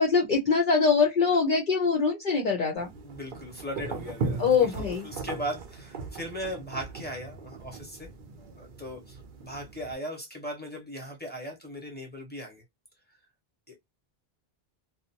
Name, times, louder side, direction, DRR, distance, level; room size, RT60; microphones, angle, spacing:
voice 1, 0.0-2.9 4.4-5.0, left 5 dB, 55° left, 0.7 m, -23 dB
voice 2, 2.8-8.1 8.4-12.6 13.7-13.8, equal, 10° left, 0.9 m, -38 dB
sound 1, 2.8-9.9, right 4 dB, 60° right, 0.7 m, -38 dB
2.5 x 2.1 x 2.7 m
omnidirectional pair, 1.0 m